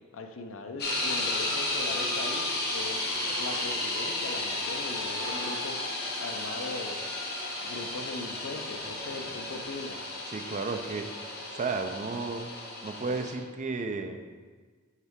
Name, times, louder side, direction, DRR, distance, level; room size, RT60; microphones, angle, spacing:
voice 1, 0.1-5.9 6.2-7.1 7.6-10.1, left 3 dB, 65° left, 5 dB, 0.6 m, -40 dB
sound 1, 0.8-13.3, left 2 dB, 50° left, 1.0 m, -33 dB
sound 2, 2.5-4.1 6.4-6.5 6.9-9.9 10.6-11.2 12.2-12.5, right 1 dB, 70° right, 1.2 m, -51 dB
voice 2, 10.3-11.1 11.5-12.5 12.8-14.2, right 4 dB, 35° right, 6 dB, 0.4 m, -33 dB
6.5 x 4.7 x 3.5 m, 1.5 s
head